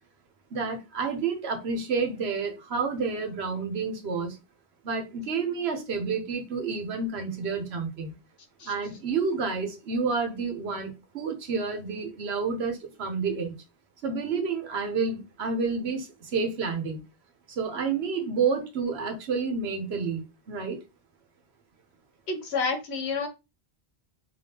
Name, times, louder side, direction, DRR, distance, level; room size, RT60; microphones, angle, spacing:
voice 1, 0.5-4.4 4.8-8.1 8.6-13.5 14.0-17.0 17.5-20.8, right 5 dB, 75° right, 1.0 m, -29 dB
voice 2, 22.3-23.3, left 4 dB, 85° left, 1.1 m, -29 dB
3.4 x 2.6 x 2.8 m
omnidirectional pair, 1.1 m